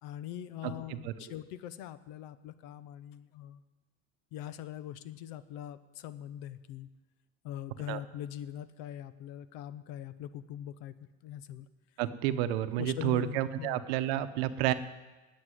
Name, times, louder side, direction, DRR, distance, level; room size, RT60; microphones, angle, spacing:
voice 1, 0.0-3.6 4.3-6.9 7.4-10.9 11.2-11.7 12.8-13.8, left 11 dB, 60° left, 15 dB, 0.8 m, -42 dB
voice 2, 0.6-1.1 7.9-8.0 12.0-14.7, right 12 dB, 80° right, 11 dB, 0.9 m, -30 dB
9.8 x 8.7 x 9.2 m, 1.2 s
cardioid pair, 155°, 30 cm